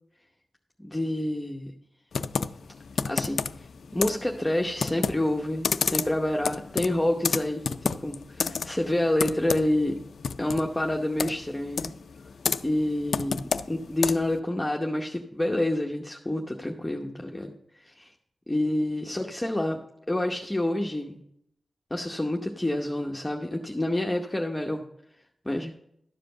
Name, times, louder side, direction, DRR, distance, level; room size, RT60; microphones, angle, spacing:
voice 1, 0.8-1.7 3.1-10.0 10.4-11.9 12.6-13.4 13.7-18.1 18.5-19.8 20.1-21.2 21.9-24.8 25.4-25.7, left 1 dB, 15° left, 1 dB, 0.9 m, -28 dB
Computer keyboard, 2.1-14.4, left 5 dB, 90° left, 0.4 m, -31 dB
12.0 x 5.0 x 6.6 m, 0.75 s
wide cardioid pair, 80°, 0 cm